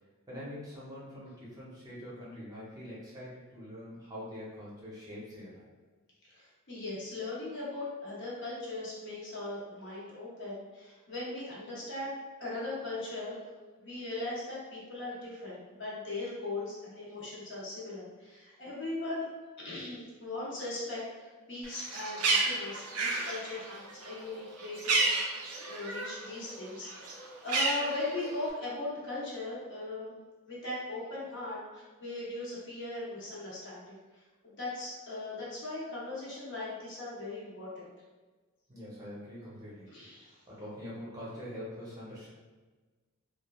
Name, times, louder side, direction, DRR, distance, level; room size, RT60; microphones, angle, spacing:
voice 1, 0.3-5.6 38.7-42.3, equal, 15° right, -8 dB, 0.7 m, -44 dB
voice 2, 6.3-13.4 13.8-19.2 19.6-25.1 25.7-30.2 30.5-37.9 39.9-40.4, left 2 dB, 55° left, -7 dB, 0.9 m, -39 dB
Bird, 21.6-26.2 26.6-28.5, right 3 dB, 80° right, 0.5 m, -31 dB
3.1 x 2.3 x 2.3 m, 1.3 s
head